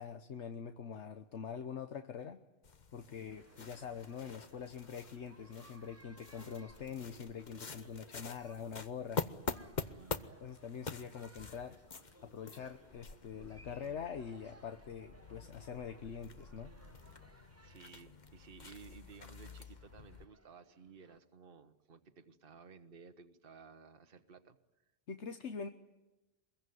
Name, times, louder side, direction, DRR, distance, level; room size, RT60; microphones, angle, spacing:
voice 1, 0.0-2.4 2.9-9.2 10.4-11.8 12.2-16.7 25.1-25.7, left 7 dB, 80° left, 8 dB, 1.4 m, -44 dB
sound 1, 2.6-20.3, left 4 dB, 40° left, 1.2 m, -47 dB
sound 2, 3.3-21.2, right 2 dB, 15° right, 0.9 m, -63 dB
voice 2, 9.8-10.4 17.3-24.6, right 5 dB, 55° right, 8 dB, 1.4 m, -56 dB
25.0 x 22.0 x 9.4 m, 1.0 s
omnidirectional pair, 1.2 m